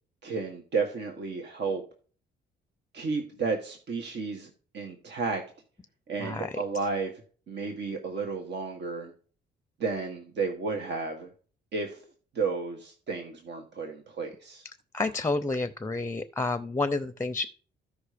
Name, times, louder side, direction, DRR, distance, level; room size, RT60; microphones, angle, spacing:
voice 1, 0.2-1.8 2.9-5.4 6.1-7.1 7.5-9.1 9.8-11.3 11.7-12.0 12.3-14.6, right 4 dB, 60° right, 4 dB, 1.5 m, -32 dB
voice 2, 6.2-6.6 14.9-17.5, left 3 dB, 15° left, 13 dB, 0.6 m, -29 dB
14.5 x 5.3 x 5.0 m, 0.43 s
cardioid pair, 90°, 20 cm